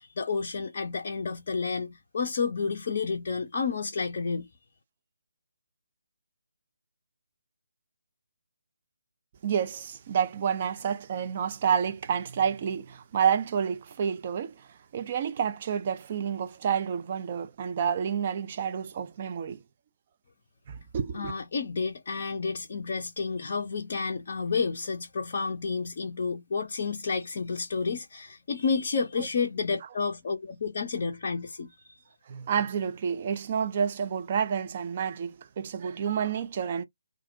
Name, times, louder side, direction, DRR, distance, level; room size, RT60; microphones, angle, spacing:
voice 1, 0.0-4.5 21.1-31.9, left 5 dB, 40° left, 0.4 m, -30 dB
voice 2, 9.4-19.6 20.7-21.3 29.2-29.3 32.3-36.8, right 7 dB, 35° right, 0.4 m, -29 dB
2.4 x 2.0 x 2.6 m
figure-of-eight pair, 145°, 0 cm